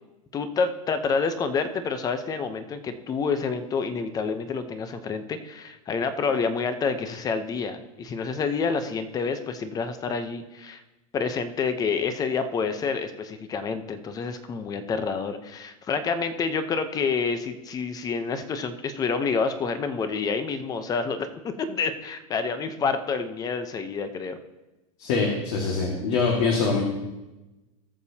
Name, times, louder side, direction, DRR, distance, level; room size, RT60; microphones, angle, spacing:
voice 1, 0.3-10.8 11.1-24.4, left 5 dB, 20° left, 10 dB, 0.8 m, -28 dB
voice 2, 25.0-26.8, left 4 dB, 60° left, -1 dB, 2.0 m, -24 dB
18.0 x 6.9 x 2.9 m, 1.0 s
supercardioid pair, 140°, 18 cm